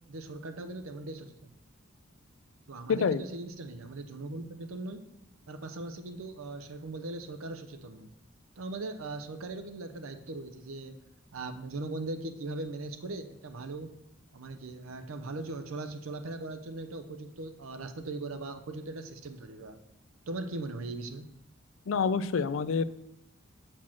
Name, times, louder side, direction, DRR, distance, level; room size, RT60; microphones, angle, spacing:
voice 1, 0.1-1.6 2.7-5.1 5.5-8.1 8.6-11.0 11.3-13.9 14.3-19.8 20.3-21.3, right 2 dB, 85° right, 9 dB, 0.6 m, -39 dB
voice 2, 2.9-3.2 21.9-22.8, left 5 dB, 75° left, 15 dB, 0.4 m, -27 dB
6.1 x 4.5 x 5.7 m, 0.81 s
head